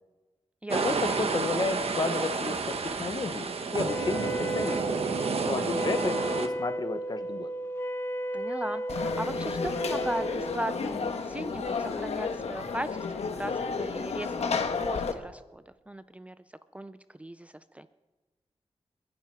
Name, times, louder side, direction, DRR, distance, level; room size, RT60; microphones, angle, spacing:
sound 1, 0.7-6.5, right 4 dB, 70° right, 1.3 m, -30 dB
voice 1, 0.8-4.8 5.4-7.5, left 3 dB, 40° left, 10 dB, 1.0 m, -32 dB
Wind instrument woodwind instrument, 3.8-10.4, right 1 dB, 25° left, 1.1 m, -34 dB
voice 2, 8.3-13.1 13.3-16.4 16.7-17.9, right 1 dB, 10° right, 13 dB, 0.4 m, -37 dB
Conversation / Crowd, 8.9-15.1, left 5 dB, 85° left, 1.2 m, -32 dB
29.0 x 10.5 x 4.7 m, 1.2 s
wide cardioid pair, 145°, 11 cm